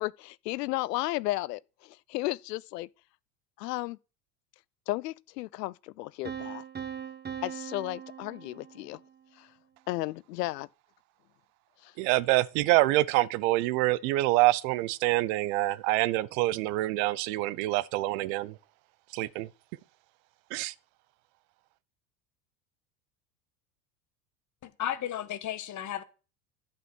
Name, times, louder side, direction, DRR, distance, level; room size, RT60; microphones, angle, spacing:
voice 1, 0.0-2.9 3.6-4.0 4.9-6.6 7.4-9.0 9.4-9.5 9.9-10.7 11.8-11.9, left 18 dB, 75° left, 0.6 m, -34 dB
Piano, 6.3-9.1, right 8 dB, 20° right, 1.4 m, -40 dB
voice 2, 12.0-18.6 19.1-19.5 20.5-20.7, right 18 dB, 60° right, 0.8 m, -26 dB
voice 3, 24.6-26.0, left 11 dB, 35° left, 1.3 m, -34 dB
11.5 x 5.4 x 6.2 m
hypercardioid pair, 80°, 48 cm